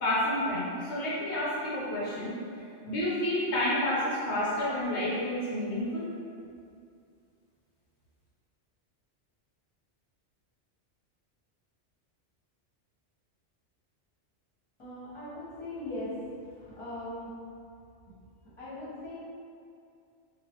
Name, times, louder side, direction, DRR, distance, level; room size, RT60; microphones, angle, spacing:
voice 1, 0.0-2.3 2.9-6.0, left 1 dB, 75° left, -9 dB, 1.0 m, -29 dB
voice 2, 14.8-16.1 16.7-17.3 18.6-19.2, left 1 dB, 25° left, -11 dB, 1.2 m, -39 dB
3.2 x 2.4 x 2.9 m, 2.4 s
omnidirectional pair, 1.2 m